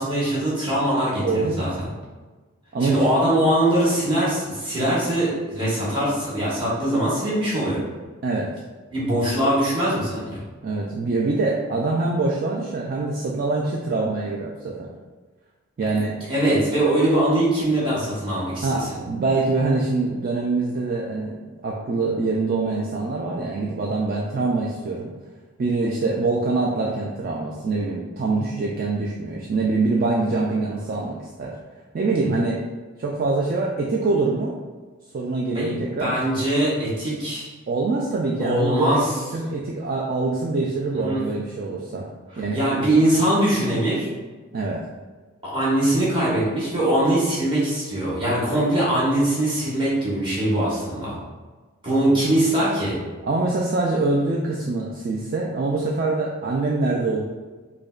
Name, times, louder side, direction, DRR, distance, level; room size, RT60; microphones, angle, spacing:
voice 1, 0.0-1.7 2.8-7.8 8.9-10.4 16.3-18.9 35.5-37.4 38.4-39.1 40.9-41.2 42.5-44.1 45.4-51.2 51.8-52.9, right 1 dB, 25° right, -9 dB, 1.2 m, -22 dB
voice 2, 1.2-1.6 2.7-3.1 8.2-8.5 10.6-14.9 15.8-16.1 18.6-21.4 21.6-25.1 25.6-31.5 31.9-32.6 33.0-34.5 35.1-36.2 37.7-39.0 39.3-42.1 42.4-42.6 44.5-44.8 53.3-57.2, right 3 dB, 45° right, -2 dB, 0.3 m, -24 dB
5.0 x 2.2 x 2.4 m, 1.3 s
head